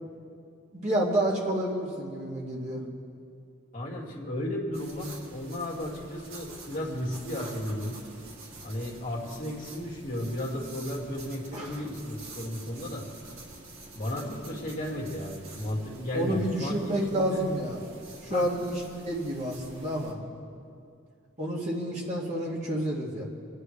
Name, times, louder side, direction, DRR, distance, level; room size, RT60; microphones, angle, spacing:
voice 1, 0.7-2.8 11.5-11.8 16.1-17.8 18.2-18.8 19.1-20.2 21.4-23.2, right 1 dB, 35° right, -4 dB, 2.1 m, -29 dB
voice 2, 3.7-8.0 8.6-13.1 13.9-17.4 18.3-18.5, left 1 dB, 40° left, -3 dB, 2.0 m, -34 dB
sound 1, 4.7-20.1, right 2 dB, 85° right, 2.0 m, -47 dB
25.0 x 10.0 x 3.3 m, 2.4 s
head